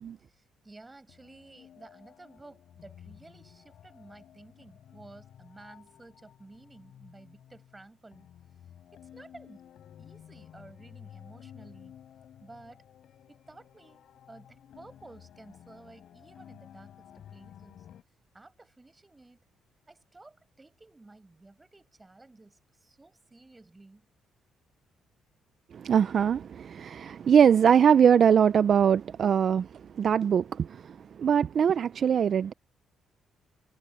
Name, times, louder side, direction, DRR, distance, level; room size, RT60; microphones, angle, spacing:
voice 1, 0.3-8.3 8.9-9.7 10.0-12.0 12.4-12.8 13.3-17.9 18.3-19.4 19.9-24.1, right 2 dB, 20° right, 5.6 m, -53 dB
sound 1, 1.1-18.0, left 10 dB, 70° left, 4.1 m, -53 dB
voice 2, 25.7-29.7 30.0-30.7 31.2-32.5, right 8 dB, 55° right, 0.5 m, -22 dB
cardioid pair, 90°, 0 cm